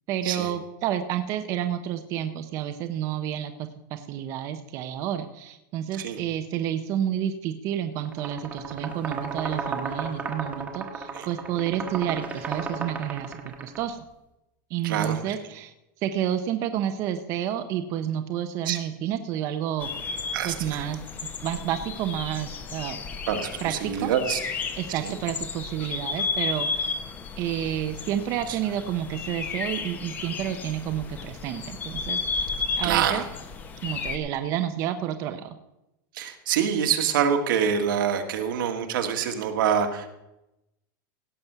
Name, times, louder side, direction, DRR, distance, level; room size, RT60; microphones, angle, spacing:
voice 1, 0.1-3.5 3.9-14.0 14.7-15.7 16.0-19.9 20.4-21.0 21.4-23.0 23.6-24.1 24.8-26.9 27.4-32.2 32.8-33.2 33.8-35.5, right 10 dB, 30° right, 8 dB, 0.6 m, -30 dB
sound 1, 8.0-13.8, right 4 dB, 15° right, 1.1 m, -34 dB
voice 2, 14.8-15.4 18.6-18.8 20.3-20.9 23.3-24.4 24.9-25.1 28.5-28.6 32.8-33.3 36.1-40.1, right 8 dB, 85° right, 4 dB, 1.8 m, -26 dB
sound 2, 19.8-34.2, left 4 dB, 15° left, 0.7 m, -33 dB
16.5 x 6.0 x 6.7 m, 0.92 s
supercardioid pair, 180°, 11 cm